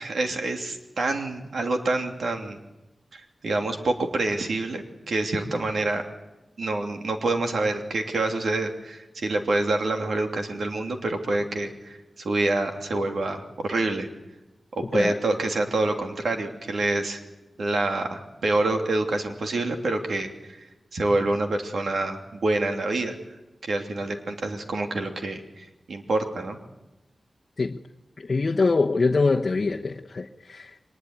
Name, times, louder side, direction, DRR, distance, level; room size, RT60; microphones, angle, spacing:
voice 1, 0.0-2.6 3.1-6.0 6.6-14.1 14.7-17.2 17.6-20.6 20.9-23.1 23.6-26.6, right 2 dB, 75° right, 2.9 m, -27 dB
voice 2, 28.2-30.8, left 3 dB, 50° left, 1.0 m, -24 dB
23.5 x 20.0 x 9.5 m
wide cardioid pair, 105°, 0 cm